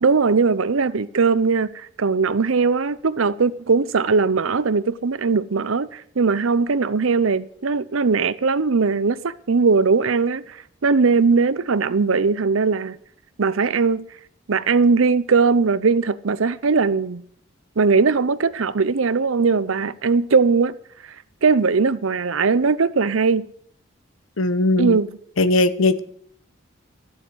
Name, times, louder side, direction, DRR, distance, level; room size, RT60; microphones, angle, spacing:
voice 1, 0.0-10.6 10.8-13.0 13.4-14.1 14.5-17.2 17.8-20.7 21.4-23.5 24.8-25.1, right 4 dB, 85° right, 0.7 m, -19 dB
voice 2, 24.4-25.0 25.4-26.0, left 2 dB, 90° left, 0.9 m, -18 dB
13.5 x 7.2 x 8.0 m
head